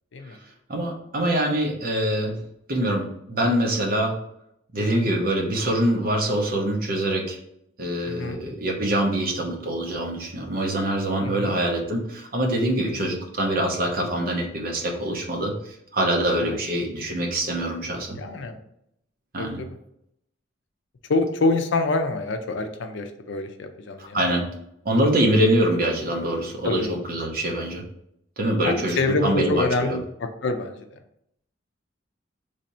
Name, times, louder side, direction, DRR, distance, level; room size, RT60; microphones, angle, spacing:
voice 1, 0.7-2.4 2.7-4.1 4.7-7.4 7.8-18.2 19.3-19.6 24.0-24.5 24.8-27.8 28.4-30.0, right 1 dB, 50° right, 1 dB, 0.8 m, -24 dB
voice 2, 4.8-5.2 8.1-8.4 11.2-11.6 12.8-13.0 16.4-16.6 18.2-18.6 19.4-19.8 21.1-24.2 26.6-26.9 28.6-30.8, left 3 dB, 70° left, 6 dB, 0.5 m, -26 dB
3.3 x 2.7 x 4.2 m, 0.77 s
head